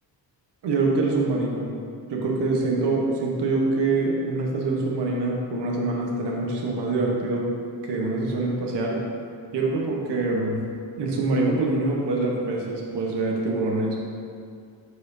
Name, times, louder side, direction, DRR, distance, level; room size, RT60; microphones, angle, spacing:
voice 1, 0.6-1.7 2.1-7.5 7.8-9.0 9.5-10.6 11.0-14.0, right 3 dB, 90° right, -2 dB, 1.1 m, -25 dB
12.0 x 4.9 x 2.7 m, 2.3 s
cardioid pair, 85°, 40 cm